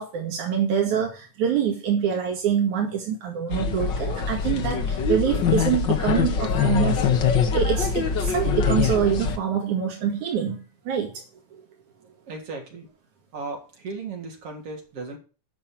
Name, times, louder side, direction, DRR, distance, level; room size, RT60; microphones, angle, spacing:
voice 1, 0.0-7.0 7.5-11.2 11.5-11.6, right 8 dB, 75° right, 0 dB, 3.4 m, -25 dB
sound 1, 3.5-9.4, left 6 dB, 50° left, 1.5 m, -23 dB
voice 2, 12.3-12.9 13.3-15.2, right 3 dB, 50° right, 1 dB, 4.3 m, -36 dB
10.5 x 6.5 x 7.4 m, 0.34 s
omnidirectional pair, 3.5 m